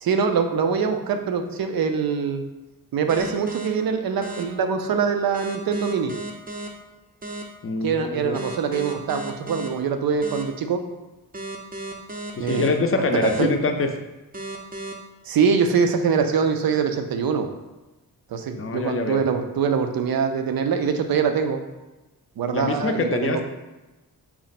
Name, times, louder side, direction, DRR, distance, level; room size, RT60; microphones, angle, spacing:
voice 1, 0.0-2.4 2.9-6.1 7.8-10.8 12.4-12.7 13.2-13.5 15.3-17.5 18.3-21.6 22.4-23.4, right 6 dB, 70° right, 6 dB, 0.5 m, -23 dB
sound 1, 3.1-3.7 4.2-4.4 5.3-6.7 7.2-7.4 8.3-9.7 10.2-10.4 11.3-12.7 13.2-13.4 14.3-14.9, right 2 dB, 25° right, 0.5 m, -34 dB
voice 2, 7.6-8.4 12.3-13.9 18.6-19.2 22.5-23.4, left 3 dB, 35° left, 5 dB, 0.5 m, -24 dB
4.3 x 2.1 x 4.0 m, 1.1 s
cardioid pair, 80°, 37 cm